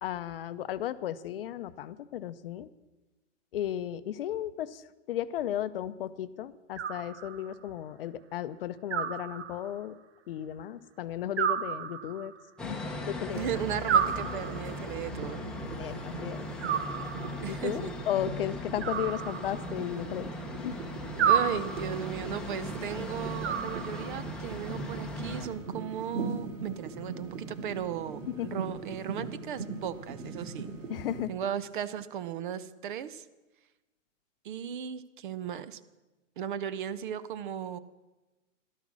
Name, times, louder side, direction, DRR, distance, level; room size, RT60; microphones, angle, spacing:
voice 1, 0.0-2.7 3.5-4.8 5.1-9.9 10.3-12.3 12.6-12.8 13.1-13.5 15.8-16.5 17.5-20.3 20.6-20.8 28.4-28.6 30.9-31.3, left 11 dB, 50° left, 14 dB, 0.6 m, -35 dB
Animal, 6.8-7.6 8.9-9.9 11.4-12.4 13.9-14.9 16.6-17.5 18.8-19.9 21.2-22.1 23.4-24.3, right 8 dB, 60° right, 1.3 m, -31 dB
sound 1, 12.6-25.5, left 1 dB, ahead, 0.9 m, -39 dB
voice 2, 13.3-15.4 17.4-17.9 21.2-30.7 31.3-33.2 34.4-35.8 36.4-37.8, right 9 dB, 40° right, 15 dB, 0.7 m, -36 dB
sound 2, 13.3-31.3, right 3 dB, 75° right, 3.1 m, -41 dB
13.5 x 12.0 x 6.1 m, 1.1 s
hypercardioid pair, 150°, 38 cm